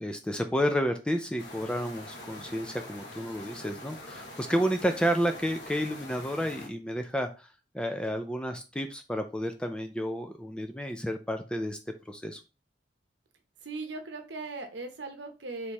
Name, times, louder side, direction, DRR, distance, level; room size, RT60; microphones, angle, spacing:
voice 1, 0.0-7.5 7.7-11.8 12.1-12.4, equal, 5° left, 6 dB, 0.4 m, -31 dB
sound 1, 1.4-6.7, left 1 dB, 70° left, 1.0 m, -44 dB
voice 2, 13.6-15.7, right 3 dB, 70° right, 6 dB, 0.9 m, -38 dB
4.4 x 3.4 x 3.0 m, 0.30 s
head